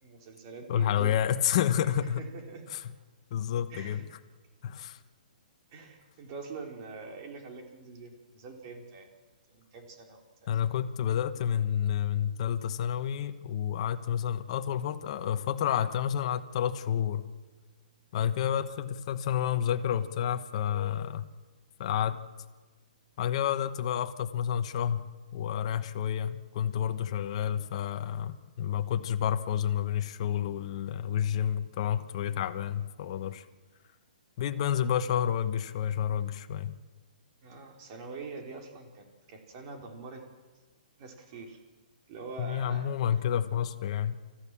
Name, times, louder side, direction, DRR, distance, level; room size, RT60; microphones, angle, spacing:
voice 1, 0.0-1.1 1.8-2.6 3.7-4.0 5.7-9.1 9.5-10.5 37.4-40.3 41.0-41.6 42.1-42.9, right 4 dB, 35° right, 3 dB, 3.5 m, -44 dB
voice 2, 0.7-2.2 2.7-2.8 3.3-4.0 4.6-5.0 10.5-17.3 18.1-21.3 21.8-22.2 23.2-33.4 34.4-36.8 42.4-44.2, left 9 dB, 45° left, 9 dB, 1.1 m, -30 dB
29.0 x 14.5 x 7.3 m, 1.4 s
hypercardioid pair, 155°, 5 cm